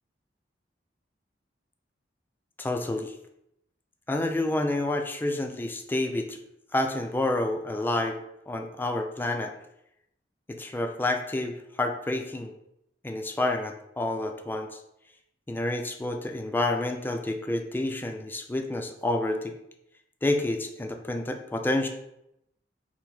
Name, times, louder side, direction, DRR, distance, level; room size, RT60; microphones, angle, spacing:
voice 1, 2.6-3.1 4.1-6.4 6.7-8.2 8.5-9.5 10.5-12.5 13.0-14.8 15.5-19.5 20.2-21.9, left 2 dB, 10° left, 5 dB, 0.3 m, -29 dB
4.5 x 2.1 x 4.1 m, 0.81 s
head